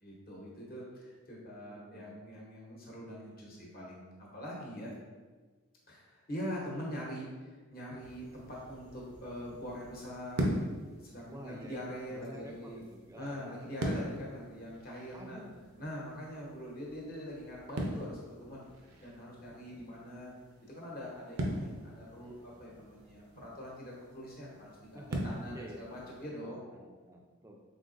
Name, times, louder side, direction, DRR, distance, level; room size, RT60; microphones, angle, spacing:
voice 1, 0.0-4.9 5.9-10.6 11.0-12.8 13.2-15.4 15.8-18.6 19.0-20.3 20.7-26.6, equal, 40° left, -4 dB, 0.9 m, -43 dB
voice 2, 1.6-2.2 11.3-11.8 12.1-13.7 15.1-15.5 24.9-27.6, equal, 15° right, 1 dB, 0.3 m, -50 dB
sound 1, 8.0-26.3, right 1 dB, 85° right, 0.6 m, -42 dB
3.7 x 3.7 x 2.5 m, 1.4 s
head